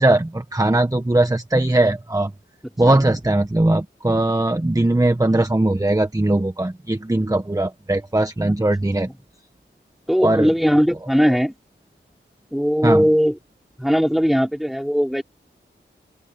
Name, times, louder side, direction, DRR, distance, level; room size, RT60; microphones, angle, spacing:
voice 1, 0.0-2.3 2.8-9.1 10.2-10.5 11.3-11.4 12.8-13.0, right 1 dB, 15° right, 1.4 m, -19 dB
voice 2, 10.1-11.5 12.5-13.4 13.8-15.2, equal, ahead, 5.3 m, -19 dB
open air
cardioid pair, 50°, 20 cm